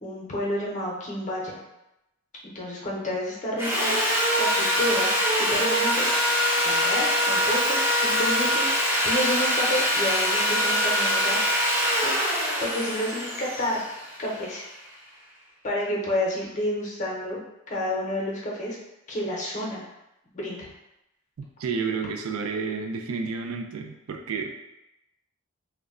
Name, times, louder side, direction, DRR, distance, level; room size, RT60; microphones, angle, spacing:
voice 1, 0.0-1.6 2.4-4.0 4.4-5.1 5.4-6.0 6.6-8.7 9.0-12.1 12.6-13.9 14.2-14.7 15.6-17.4 17.7-18.8 19.1-19.9 20.3-20.7, left 1 dB, 35° left, -3 dB, 0.6 m, -30 dB
Sawing, 3.6-14.6, equal, 10° right, 0.5 m, -24 dB
voice 2, 21.6-24.5, right 5 dB, 85° right, 4 dB, 0.4 m, -30 dB
2.1 x 2.1 x 3.6 m, 0.90 s
head